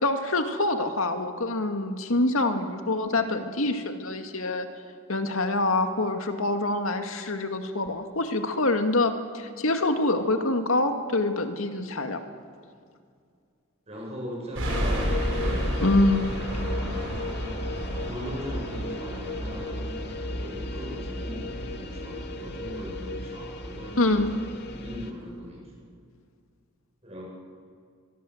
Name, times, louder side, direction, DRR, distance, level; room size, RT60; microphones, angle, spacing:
voice 1, 0.0-4.7 5.1-12.3 15.8-16.2 24.0-24.3, left 2 dB, 80° left, 6 dB, 2.2 m, -25 dB
voice 2, 13.9-24.3 24.7-25.9 27.0-27.2, equal, 30° right, -3 dB, 7.8 m, -40 dB
sound 1, 14.5-23.1, equal, 70° right, 6.0 m, -34 dB
sound 2, 14.7-25.1, left 1 dB, 50° left, 2.3 m, -34 dB
24.0 x 23.5 x 8.0 m, 2.2 s
head